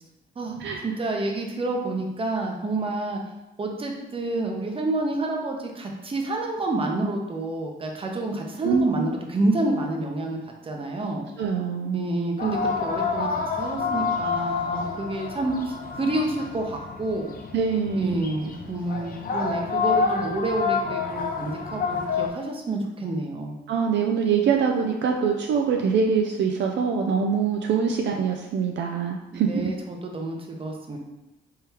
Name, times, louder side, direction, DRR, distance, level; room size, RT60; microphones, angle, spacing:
voice 1, 0.4-3.2 3.6-11.2 11.9-17.3 17.9-23.5 29.3-31.0, right 2 dB, 25° right, 1 dB, 0.8 m, -29 dB
voice 2, 8.6-9.1 11.4-12.1 17.5-18.2 23.7-29.5, right 6 dB, 65° right, 2 dB, 0.4 m, -24 dB
sound 1, 12.4-22.3, left 5 dB, 45° left, 0.6 m, -28 dB
3.7 x 3.3 x 2.9 m, 0.97 s
cardioid pair, 90°, 20 cm